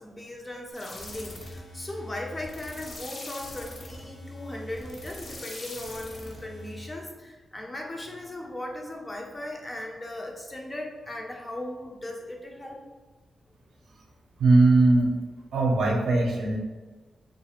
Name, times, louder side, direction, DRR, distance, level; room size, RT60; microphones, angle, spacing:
voice 1, 0.0-12.8, left 1 dB, 20° left, 0 dB, 0.3 m, -38 dB
sound 1, 0.7-7.0, left 1 dB, 55° left, 0.6 m, -42 dB
voice 2, 14.4-15.2 15.5-16.6, right 2 dB, 75° right, 0 dB, 0.5 m, -20 dB
2.4 x 2.3 x 2.8 m, 1.3 s
wide cardioid pair, 125°, 0 cm